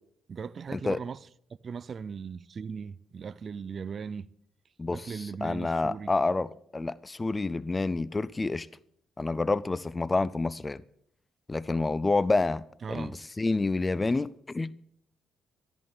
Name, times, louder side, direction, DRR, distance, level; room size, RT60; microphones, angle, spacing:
voice 1, 0.3-1.3 1.6-4.3 4.9-6.1 12.8-13.2, right 6 dB, 45° right, 0.5 m, -38 dB
voice 2, 4.8-8.7 9.2-10.8 11.5-12.6 12.9-13.1 13.4-14.7, left 3 dB, 20° left, 0.5 m, -28 dB
13.5 x 11.0 x 6.7 m
cardioid pair, 90°, 0 cm